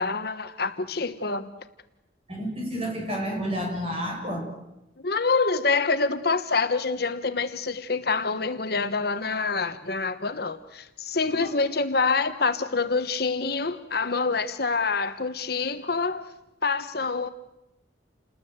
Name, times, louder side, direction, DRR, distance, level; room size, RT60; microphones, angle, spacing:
voice 1, 0.0-1.5 5.0-16.3 16.6-17.3, left 4 dB, 55° left, 1.2 m, -26 dB
voice 2, 2.3-4.5 11.3-11.4, equal, 30° right, 7.4 m, -30 dB
29.5 x 20.5 x 8.1 m
head